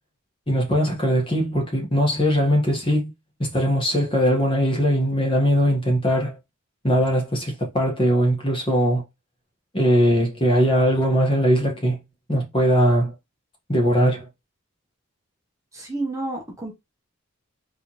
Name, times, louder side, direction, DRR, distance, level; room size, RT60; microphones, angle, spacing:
voice 1, 0.5-3.1 3.4-6.4 6.8-9.0 9.7-12.0 12.3-13.1 13.7-14.2, equal, 25° left, 1.4 m, -20 dB
voice 2, 15.7-16.7, right 2 dB, 15° right, 1.0 m, -30 dB
4.1 x 3.4 x 3.0 m
head